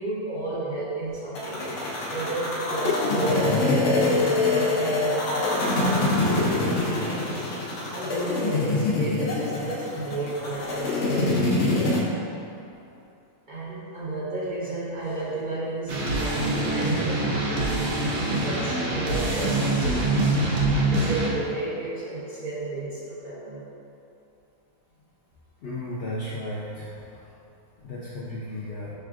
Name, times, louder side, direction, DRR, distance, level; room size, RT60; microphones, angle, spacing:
voice 1, 0.0-1.7 2.1-7.4 7.9-11.5 13.5-20.3 20.8-23.7, right 2 dB, 40° right, -10 dB, 0.9 m, -32 dB
sound 1, 1.4-12.0, left 2 dB, 60° left, 0.9 m, -25 dB
sound 2, 15.9-21.3, right 2 dB, 65° right, 0.9 m, -24 dB
voice 2, 25.6-27.2 27.8-28.9, left 1 dB, 80° left, -5 dB, 0.5 m, -34 dB
5.6 x 3.4 x 2.4 m, 2.7 s
omnidirectional pair, 1.6 m